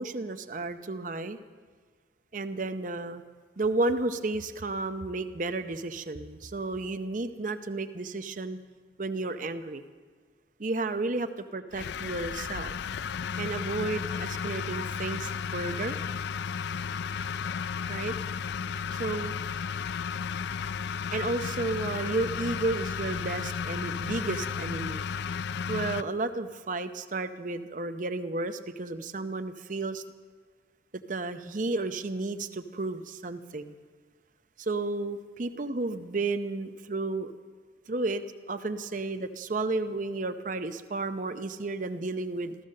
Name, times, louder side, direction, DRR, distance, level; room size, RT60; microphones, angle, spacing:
voice 1, 0.0-1.4 2.3-3.2 3.6-8.6 9.0-9.8 10.6-11.3 11.5-12.7 13.4-16.0 17.9-18.1 18.9-19.3 21.1-25.0 25.7-30.0 31.1-33.8 34.6-37.3 37.9-42.6, right 2 dB, 45° right, 10 dB, 0.7 m, -32 dB
sound 1, 11.7-26.0, left 6 dB, 65° left, 0.3 m, -33 dB
14.5 x 14.0 x 6.5 m, 1.5 s
head